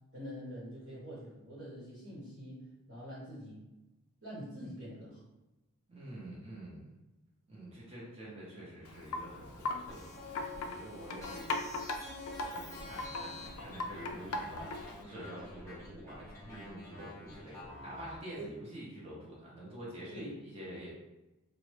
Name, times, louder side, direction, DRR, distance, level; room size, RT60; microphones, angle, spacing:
voice 1, 0.1-2.6 2.9-3.6 4.2-5.2 18.4-18.5 20.1-20.4, equal, 55° right, -8 dB, 1.0 m, -45 dB
voice 2, 5.9-6.9 7.5-11.6 12.5-14.7 15.0-20.9, right 1 dB, 30° right, -6 dB, 0.9 m, -47 dB
Wind chime, 8.8-15.0, left 2 dB, 80° left, 0.4 m, -40 dB
sound 1, 9.9-18.2, left 2 dB, 15° left, 1.2 m, -48 dB
3.1 x 2.0 x 3.0 m, 1.0 s
head